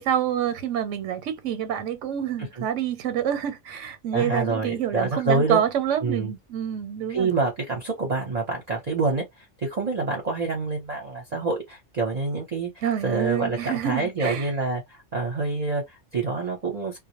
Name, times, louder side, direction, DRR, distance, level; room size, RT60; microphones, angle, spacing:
voice 1, 0.0-7.3 12.8-14.5, right 9 dB, 90° right, 1.0 m, -27 dB
voice 2, 4.1-5.6 6.0-6.3 7.1-12.7 13.0-17.0, right 3 dB, 40° right, 0.7 m, -27 dB
2.2 x 2.0 x 2.8 m
omnidirectional pair, 1.2 m